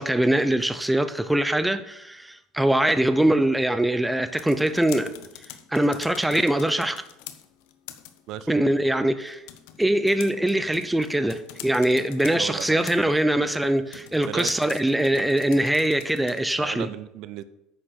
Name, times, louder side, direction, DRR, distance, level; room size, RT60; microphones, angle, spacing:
voice 1, 0.0-5.1 5.7-7.0 8.5-9.4 9.8-16.9, right 1 dB, 5° right, 0.4 m, -22 dB
sound 1, 4.1-16.6, left 12 dB, 75° left, 0.9 m, -45 dB
voice 2, 8.3-8.6 12.3-12.8 13.4-13.5 14.2-14.6 16.6-17.4, right 12 dB, 50° right, 0.6 m, -35 dB
9.5 x 6.4 x 6.4 m
cardioid pair, 165°, 0 cm